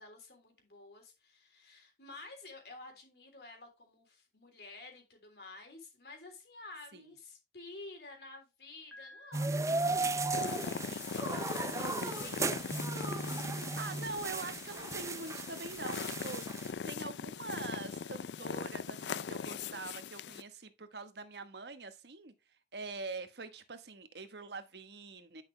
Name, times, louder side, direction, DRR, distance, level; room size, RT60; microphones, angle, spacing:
voice 1, 0.0-9.7 10.0-12.5, left 2 dB, 70° left, 3.3 m, -51 dB
Piano, 8.9-10.8, left 1 dB, ahead, 2.0 m, -57 dB
sound 1, 9.3-16.7, right 3 dB, 15° right, 0.4 m, -36 dB
sound 2, 10.3-20.4, left 6 dB, 85° left, 0.4 m, -40 dB
voice 2, 11.8-12.3 13.4-22.3 22.7-25.4, right 3 dB, 75° right, 1.2 m, -44 dB
10.5 x 5.8 x 3.2 m
head